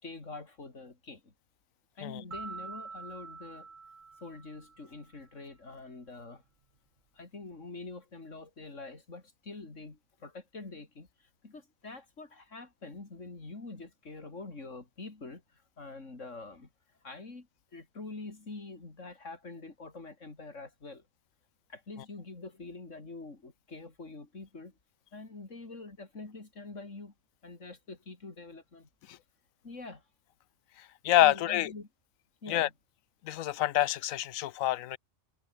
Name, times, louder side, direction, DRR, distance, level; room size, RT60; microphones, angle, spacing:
voice 1, 0.0-1.3 2.0-3.7 4.2-6.4 7.1-16.7 17.0-21.0 21.7-24.8 25.1-27.1 27.4-28.9 29.6-30.0 31.2-31.9 32.4-32.7, left 3 dB, 65° left, 3.9 m, -45 dB
sound 1, 2.3-5.1, right 4 dB, 40° right, 1.5 m, -45 dB
voice 2, 31.0-31.7 32.5-32.7 33.3-35.0, left 13 dB, 90° left, 1.0 m, -27 dB
omnidirectional pair, 1.4 m